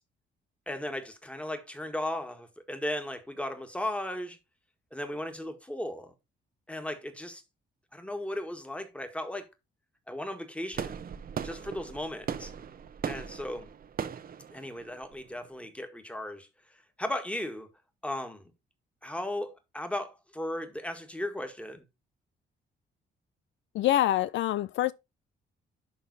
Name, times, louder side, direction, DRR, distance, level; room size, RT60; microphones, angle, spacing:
voice 1, 0.7-4.4 4.9-6.1 6.7-7.4 7.9-9.5 10.1-11.0 11.4-12.5 13.1-13.7 14.5-16.5 17.0-17.7 18.0-18.5 19.0-21.9, left 1 dB, 5° left, 1.8 m, -36 dB
sound 1, 10.7-15.7, right 7 dB, 45° right, 0.9 m, -38 dB
voice 2, 23.7-24.9, left 13 dB, 70° left, 0.4 m, -25 dB
11.5 x 3.8 x 4.1 m
cardioid pair, 90°, 20 cm